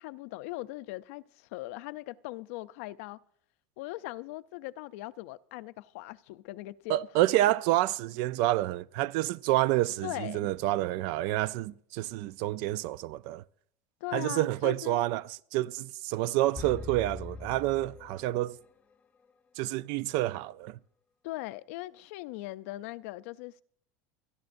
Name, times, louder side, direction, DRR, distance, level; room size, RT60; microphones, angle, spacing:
voice 1, 0.0-3.2 3.8-7.0 10.0-10.5 14.0-15.0 21.2-23.6, left 18 dB, 70° left, 0.5 m, -40 dB
voice 2, 6.9-13.4 14.1-18.6 19.6-20.8, right 16 dB, 60° right, 0.5 m, -28 dB
sound 1, 16.6-18.7, left 4 dB, 20° left, 0.7 m, -42 dB
29.0 x 11.0 x 2.6 m
supercardioid pair, 150°, 8 cm